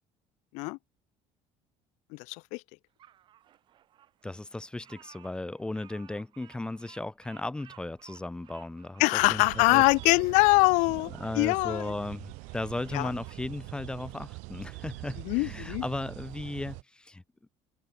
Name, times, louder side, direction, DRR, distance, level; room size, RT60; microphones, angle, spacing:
voice 1, 2.1-2.6 9.0-11.9 12.9-13.1 15.3-15.8, left 28 dB, 80° left, 0.5 m, -24 dB
Bird vocalization bird call bird song, 3.0-12.0 12.4-13.5, right 11 dB, 40° right, 4.2 m, -58 dB
voice 2, 4.2-9.8 11.2-17.5, left 2 dB, 5° left, 2.7 m, -36 dB
sound 1, 9.2-16.8, right 27 dB, 80° right, 2.7 m, -43 dB
cardioid pair, 165°, 12 cm